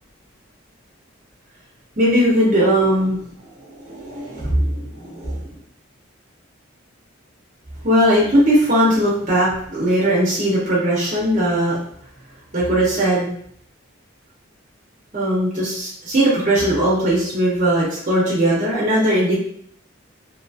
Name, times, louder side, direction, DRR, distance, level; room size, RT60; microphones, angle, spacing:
voice 1, 2.0-3.2 3.6-5.4 7.8-11.8 12.5-13.3 15.1-19.3, equal, 35° right, -6 dB, 0.7 m, -19 dB
2.8 x 2.6 x 2.3 m, 0.64 s
head